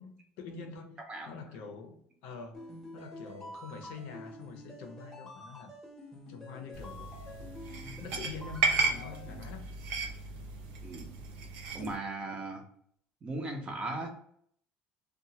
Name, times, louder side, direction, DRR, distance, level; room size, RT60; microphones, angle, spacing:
voice 1, 0.0-5.8 6.3-7.1 8.0-9.7, left 4 dB, 80° left, 5 dB, 0.5 m, -45 dB
sound 1, 2.5-9.4, left 1 dB, 10° left, 0.8 m, -48 dB
sound 2, 6.7-11.9, right 3 dB, 80° right, 0.5 m, -34 dB
voice 2, 11.7-12.6 13.2-14.1, right 2 dB, 30° right, 3 dB, 0.7 m, -37 dB
2.7 x 2.2 x 2.8 m, 0.63 s
cardioid pair, 120°, 4 cm